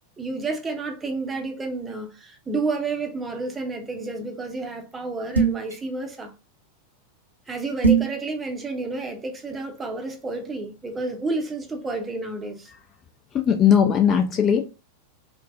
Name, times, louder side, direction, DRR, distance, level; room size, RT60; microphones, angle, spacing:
voice 1, 0.2-6.3 7.5-12.7, right 3 dB, 15° right, 0.6 m, -30 dB
sound 1, 5.3-5.7 7.8-8.2, right 6 dB, 80° right, 0.5 m, -19 dB
voice 2, 13.3-14.6, left 8 dB, 30° left, 0.3 m, -18 dB
3.2 x 2.1 x 2.4 m
figure-of-eight pair, 90°, 0 cm